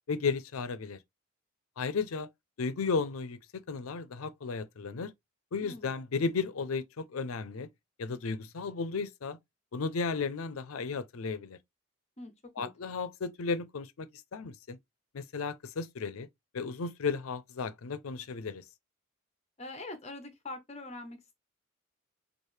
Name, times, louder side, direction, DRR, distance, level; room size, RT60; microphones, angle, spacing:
voice 1, 0.1-1.0 1.8-2.3 2.6-3.4 3.7-5.1 5.5-7.7 8.0-9.4 9.7-11.6 12.6-14.8 15.1-16.3 16.5-18.6, left 4 dB, 85° left, 0.5 m, -34 dB
voice 2, 5.6-5.9 12.2-12.3 12.6-12.7 19.6-21.3, left 2 dB, 30° left, 0.7 m, -43 dB
4.7 x 2.4 x 3.2 m
head